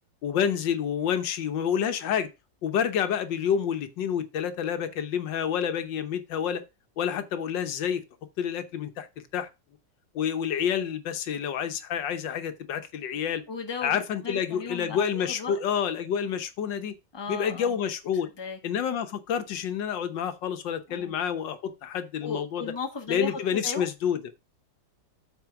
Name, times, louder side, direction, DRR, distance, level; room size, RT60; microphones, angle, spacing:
voice 1, 0.2-2.3 2.6-6.6 7.0-8.0 8.4-9.1 9.3-9.5 10.1-13.4 13.8-16.9 17.3-18.3 18.6-22.6 23.1-24.2, left 8 dB, 80° left, 1.6 m, -28 dB
voice 2, 13.5-15.6 17.1-17.8 18.4-18.6 20.9-21.1 22.2-23.9, left 4 dB, 15° left, 1.3 m, -36 dB
8.3 x 4.3 x 5.9 m
omnidirectional pair, 2.0 m